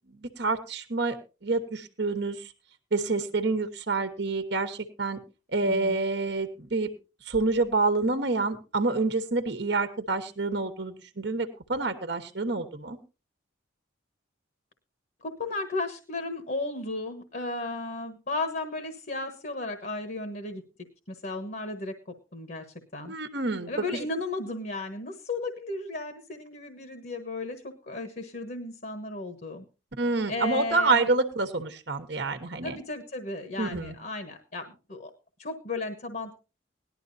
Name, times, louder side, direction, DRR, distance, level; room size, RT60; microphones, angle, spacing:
voice 1, 0.1-1.2 1.4-2.5 2.9-5.2 5.5-6.9 7.2-13.0 23.0-24.0 30.0-32.8 33.6-34.0, right 3 dB, 55° right, 9 dB, 1.2 m, -28 dB
voice 2, 5.6-6.0 15.2-20.6 21.1-22.0 22.3-22.6 22.9-23.1 23.7-29.6 30.3-31.1 32.6-35.1 35.4-36.3, left 2 dB, 45° left, 7 dB, 1.3 m, -34 dB
18.5 x 11.5 x 2.7 m, 0.31 s
head